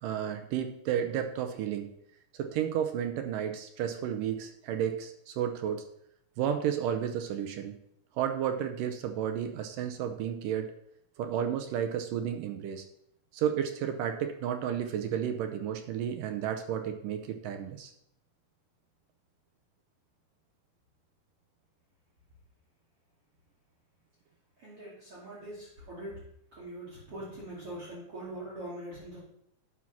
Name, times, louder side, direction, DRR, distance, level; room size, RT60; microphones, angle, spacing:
voice 1, 0.0-1.9 2.3-5.8 6.4-7.8 8.2-10.7 11.2-12.8 13.3-17.9, right 9 dB, 75° right, 6 dB, 2.1 m, -32 dB
voice 2, 24.6-26.1 26.6-29.2, right 1 dB, 40° right, -6 dB, 3.0 m, -42 dB
9.5 x 5.6 x 5.9 m, 0.73 s
omnidirectional pair, 4.5 m